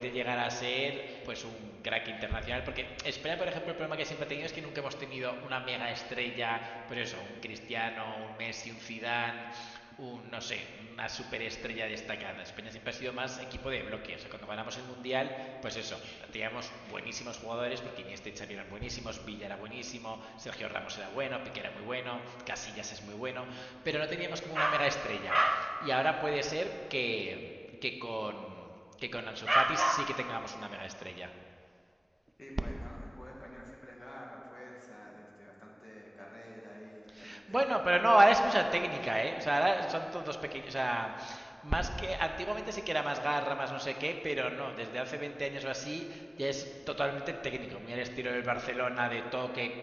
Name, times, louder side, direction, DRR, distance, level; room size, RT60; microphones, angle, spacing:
voice 1, 0.0-27.5 27.8-28.7 29.0-31.3 37.2-49.7, right 1 dB, 40° right, 6 dB, 0.5 m, -34 dB
voice 2, 32.4-38.0, equal, 60° left, -3 dB, 1.3 m, -49 dB
8.2 x 4.4 x 6.1 m, 2.5 s
wide cardioid pair, 40°, 0 cm